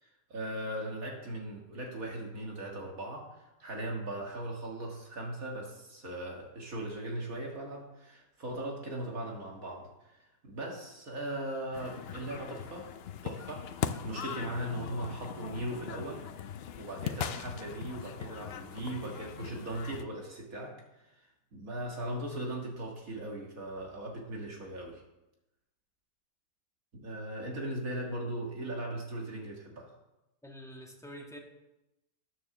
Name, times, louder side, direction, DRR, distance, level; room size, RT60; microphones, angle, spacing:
voice 1, 0.0-9.9 10.2-12.9 13.2-16.2 16.8-20.7 21.1-21.2 21.5-25.0 26.9-29.9, right 1 dB, 60° right, 0 dB, 2.1 m, -39 dB
sound 1, 11.7-20.0, left 9 dB, 90° left, 0.5 m, -40 dB
voice 2, 30.4-31.4, equal, ahead, -1 dB, 1.5 m, -46 dB
9.6 x 6.7 x 6.8 m, 0.94 s
omnidirectional pair, 1.7 m